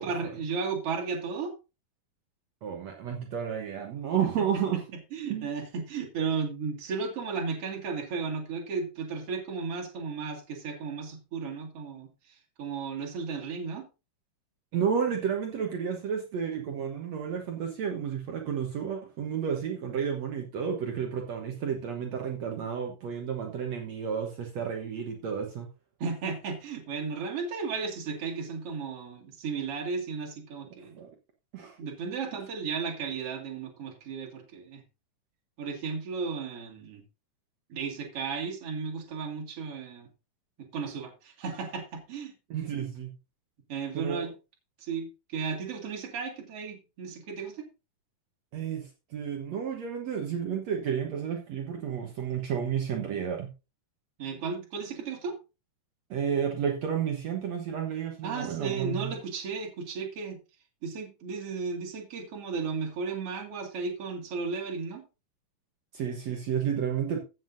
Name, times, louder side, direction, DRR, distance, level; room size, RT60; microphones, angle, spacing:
voice 1, 0.0-1.5 4.2-4.8 5.1-13.9 26.0-31.0 31.8-34.8 35.6-37.0 37.7-40.1 40.6-42.3 43.7-44.3 44.8-47.7 54.2-55.4 58.2-60.4 60.8-65.1, right 5 dB, 40° right, 0 dB, 2.8 m, -34 dB
voice 2, 2.6-4.8 5.3-5.5 14.7-25.7 30.9-31.1 31.5-31.8 42.5-43.1 43.9-44.3 48.5-53.5 56.1-59.1 65.9-67.2, right 7 dB, 65° right, 2 dB, 1.8 m, -31 dB
15.5 x 7.7 x 2.7 m, 0.29 s
omnidirectional pair, 4.4 m